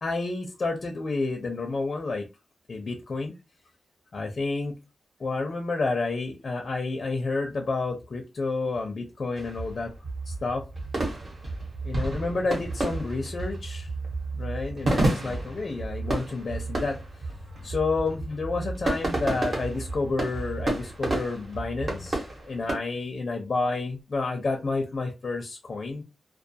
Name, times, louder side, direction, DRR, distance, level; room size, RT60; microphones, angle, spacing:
voice 1, 0.0-2.2 2.7-3.3 4.1-4.8 5.2-9.9 10.3-10.6 11.8-13.9 14.3-17.0 17.6-26.0, left 3 dB, 50° left, 3 dB, 0.5 m, -30 dB
sound 1, 9.3-22.7, right 2 dB, 50° right, 1.0 m, -31 dB
2.3 x 2.3 x 2.6 m, 0.26 s
wide cardioid pair, 110°, 0 cm